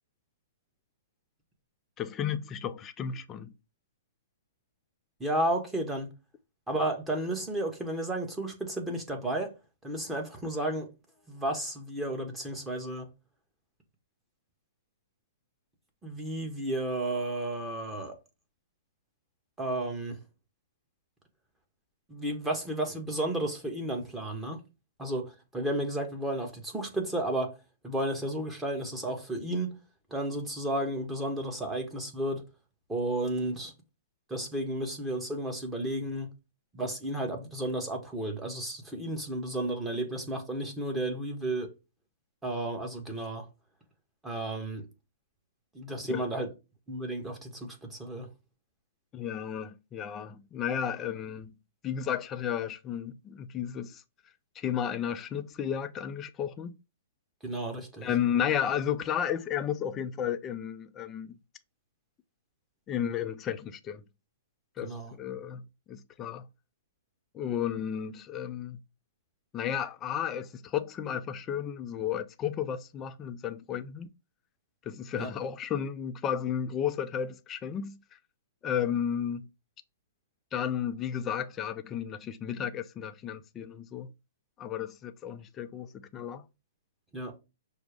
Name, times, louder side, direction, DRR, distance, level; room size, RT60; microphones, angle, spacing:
voice 1, 2.0-3.5 46.0-46.4 49.1-51.5 51.8-54.0 54.6-56.8 58.0-61.4 62.9-64.0 64.8-66.5 67.3-68.8 69.5-74.1 74.9-78.0 78.6-79.5 80.5-84.1 84.6-86.4, left 9 dB, 20° left, 0.4 m, -33 dB
voice 2, 5.2-6.1 6.7-9.5 9.8-10.9 11.3-13.1 16.0-18.2 19.6-20.2 22.1-24.6 25.0-27.5 27.8-29.7 30.1-32.4 32.9-33.7 34.3-36.3 36.7-41.7 42.4-43.4 44.2-44.9 45.7-46.5 46.9-48.3 57.4-58.1 64.8-65.1 75.2-75.3 87.1-87.3, right 1 dB, 10° right, 1.0 m, -32 dB
6.0 x 2.0 x 3.4 m
hypercardioid pair, 145°, 0 cm